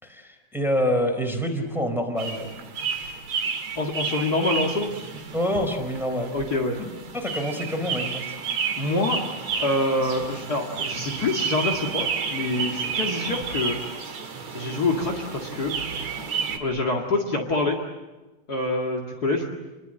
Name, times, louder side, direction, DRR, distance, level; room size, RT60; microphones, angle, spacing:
voice 1, 0.0-2.5 5.3-6.4 6.8-6.9 7.1-8.4, equal, ahead, 3 dB, 3.6 m, -26 dB
sound 1, 2.2-16.6, right 5 dB, 45° right, 2.7 m, -31 dB
voice 2, 3.7-4.9 6.3-6.8 8.8-9.2 9.6-13.8 14.5-15.7 16.6-17.8 18.5-19.5, left 2 dB, 45° left, 2 dB, 1.2 m, -26 dB
29.0 x 22.5 x 7.7 m, 1.1 s
omnidirectional pair, 5.3 m